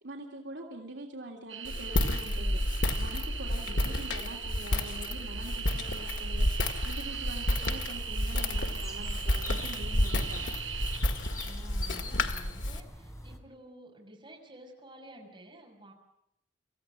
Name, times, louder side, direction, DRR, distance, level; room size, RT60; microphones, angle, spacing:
voice 1, 0.0-2.6 3.0-6.5 6.8-10.5, right 1 dB, 70° right, 1 dB, 3.1 m, -44 dB
sound 1, 1.5-11.0, right 8 dB, 90° right, 5.8 m, -40 dB
Walk footsteps, 1.6-12.8, left 1 dB, 80° left, 2.0 m, -31 dB
sound 2, 7.0-13.4, left 1 dB, 15° left, 3.1 m, -45 dB
voice 2, 11.4-15.9, right 1 dB, 25° right, -1 dB, 6.3 m, -51 dB
26.5 x 15.5 x 9.0 m, 0.78 s
head